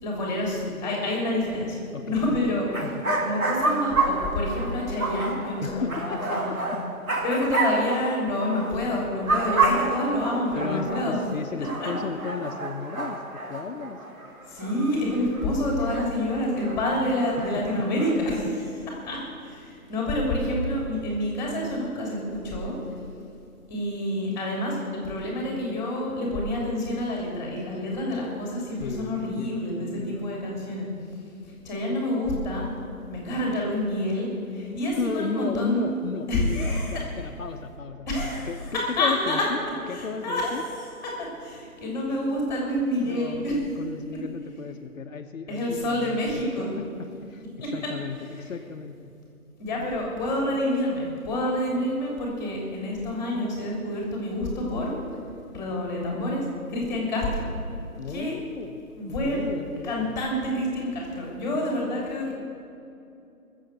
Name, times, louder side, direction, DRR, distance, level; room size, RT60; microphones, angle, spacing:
voice 1, 0.0-1.8 2.0-2.7 3.2-6.6 7.2-11.2 11.6-11.9 14.5-18.6 19.0-23.0 23.7-30.9 31.4-32.7 33.1-35.9 36.3-37.0 38.1-39.4 39.9-43.6 44.1-44.2 45.5-46.7 47.6-47.9 48.4-48.5 49.6-54.9 55.5-57.5 58.1-58.3 59.0-59.5 59.8-62.3, left 1 dB, 5° left, -2 dB, 3.1 m, -28 dB
voice 2, 1.9-2.5 2.8-3.0 5.6-6.8 10.5-14.0 17.4-17.9 28.8-30.3 35.0-39.6 39.9-40.6 43.0-46.2 46.6-49.1 58.0-58.9 59.2-60.1, left 5 dB, 65° left, 4 dB, 1.0 m, -34 dB
sound 1, 2.2-2.3 2.6-8.8 9.0-11.2 11.6-15.5 15.8-18.1, right 3 dB, 70° right, 3.4 m, -29 dB
19.5 x 7.4 x 7.8 m, 2.7 s
hypercardioid pair, 160°, 43 cm